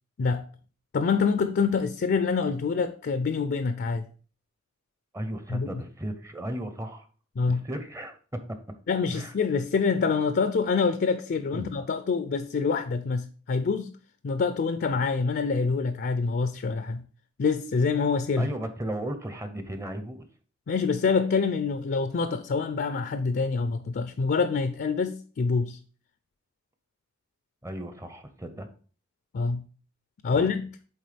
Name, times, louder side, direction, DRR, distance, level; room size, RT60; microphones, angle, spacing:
voice 1, 0.9-4.0 5.5-5.8 7.4-7.6 8.9-13.9 14.2-17.0 17.4-18.5 20.7-25.8 29.3-29.6 30.2-30.7, left 5 dB, 50° left, 0.4 m, -26 dB
voice 2, 5.1-7.0 7.5-8.6 9.1-9.3 11.5-11.7 18.4-20.3 27.6-28.7 30.3-30.5, right 1 dB, 15° right, 0.6 m, -35 dB
8.7 x 3.5 x 3.3 m
head